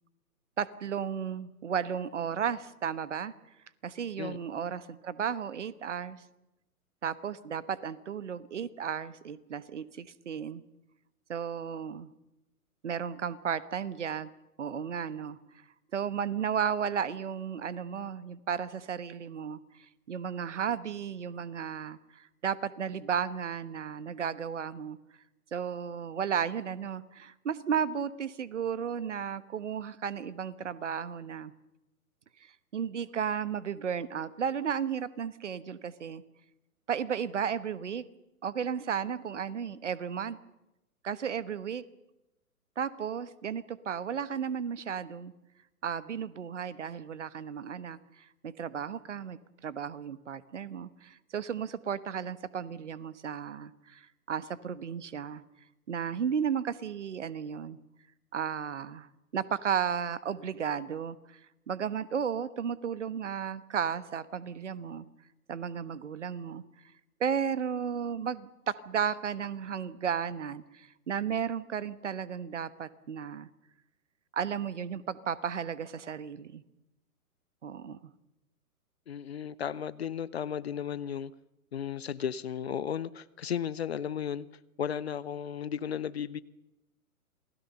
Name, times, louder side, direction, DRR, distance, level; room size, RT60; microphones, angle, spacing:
voice 1, 0.6-3.3 3.8-6.2 7.0-10.6 11.3-12.1 12.8-14.3 14.6-15.4 15.9-25.0 25.5-31.5 32.4-36.2 36.9-38.0 38.4-40.4 41.0-41.8 42.8-45.3 45.8-55.4 55.9-57.8 58.3-59.1 59.3-61.4 61.7-65.1 65.5-66.6 67.2-73.5 74.3-76.6 77.6-78.1, right 7 dB, 50° right, 17 dB, 1.3 m, -34 dB
voice 2, 79.1-81.3 81.7-84.5 84.8-86.4, left 8 dB, 45° left, 18 dB, 0.8 m, -34 dB
28.0 x 19.5 x 6.8 m, 0.94 s
figure-of-eight pair, 125°, 45 cm